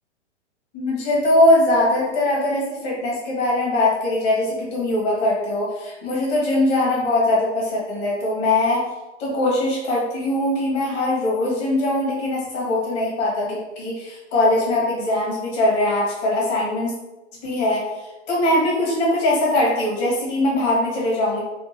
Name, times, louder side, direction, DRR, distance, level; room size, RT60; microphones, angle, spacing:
voice 1, 0.7-8.8 9.2-16.9 17.4-17.9 18.3-21.4, left 1 dB, 35° left, -3 dB, 1.3 m, -21 dB
3.5 x 2.5 x 2.9 m, 1.0 s
hypercardioid pair, 115°, 36 cm